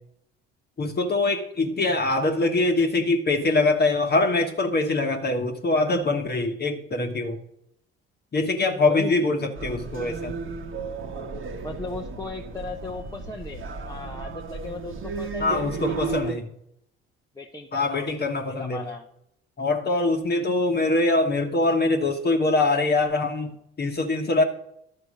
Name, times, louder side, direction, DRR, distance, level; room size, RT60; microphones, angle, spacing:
voice 1, 0.8-7.4 8.3-10.4 15.4-16.4 17.7-18.8 19.6-24.4, left 2 dB, 30° left, 4 dB, 1.2 m, -23 dB
voice 2, 8.8-9.4 11.6-16.4 17.3-18.1 18.6-19.1, left 3 dB, 10° left, 1 dB, 0.9 m, -37 dB
sound 1, 9.6-16.3, right 4 dB, 40° right, 1.2 m, -34 dB
11.5 x 4.4 x 6.4 m, 0.76 s
hypercardioid pair, 60°, 31 cm